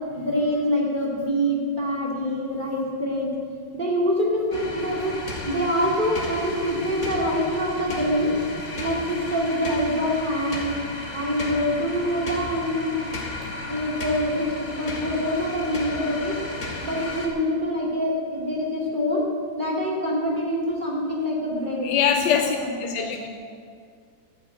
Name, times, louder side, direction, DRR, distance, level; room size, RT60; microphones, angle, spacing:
voice 1, 0.1-3.3 3.7-5.1 5.4-8.3 8.8-10.7 11.1-13.0 13.7-16.4 16.8-19.3 19.6-23.3, equal, 25° right, -3 dB, 2.8 m, -25 dB
sound 1, 4.5-17.3, left 2 dB, 40° left, 2.2 m, -34 dB
voice 2, 21.8-23.3, left 8 dB, 75° left, 6 dB, 1.3 m, -23 dB
12.5 x 9.4 x 9.1 m, 2.2 s
omnidirectional pair, 2.1 m